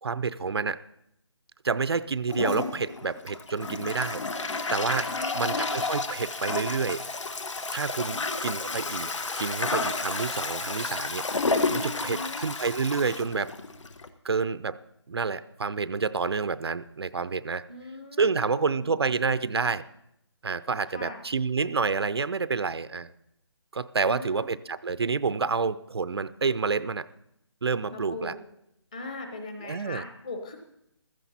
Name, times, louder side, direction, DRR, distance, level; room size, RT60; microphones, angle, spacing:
voice 1, 0.0-0.8 1.6-7.0 7.7-9.1 9.4-13.5 14.2-14.8 15.1-17.6 18.2-19.8 20.4-23.1 23.7-27.1 27.6-28.3 29.6-30.0, right 5 dB, 60° right, 15 dB, 0.5 m, -29 dB
Toilet flush, 2.3-14.1, left 3 dB, 80° left, 1.4 m, -31 dB
voice 2, 5.1-5.6 8.0-8.7 12.0-12.4 17.7-19.0 20.9-21.2 24.1-24.5 27.9-28.4 28.9-30.6, left 2 dB, 15° left, 4 dB, 0.9 m, -40 dB
15.0 x 13.5 x 4.2 m, 0.80 s
hypercardioid pair, 180°, 15 cm